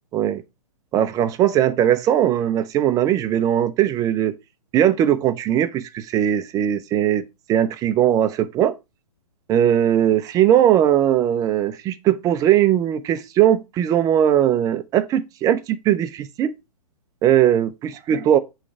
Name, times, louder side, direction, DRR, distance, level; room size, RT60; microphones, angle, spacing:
voice 1, 0.9-4.4 4.7-8.7 9.5-16.5 17.2-18.4, right 10 dB, 20° right, 0.5 m, -19 dB
8.4 x 3.2 x 4.7 m
figure-of-eight pair, 125°, 20 cm